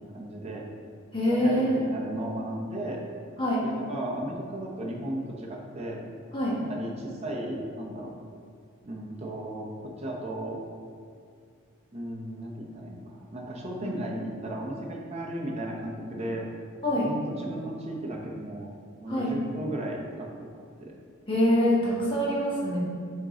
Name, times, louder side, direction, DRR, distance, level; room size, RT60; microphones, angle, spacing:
voice 1, 0.1-0.6 1.3-3.0 3.6-6.0 6.6-8.1 8.8-10.6 11.9-16.5 16.9-18.7 19.0-20.9, right 1 dB, 30° right, -2 dB, 0.8 m, -35 dB
voice 2, 1.1-1.9 3.4-3.6 6.3-6.6 13.8-13.9 16.8-17.1 19.1-19.3 21.3-22.8, equal, 25° left, -6 dB, 1.3 m, -25 dB
7.4 x 3.8 x 3.7 m, 2.3 s
head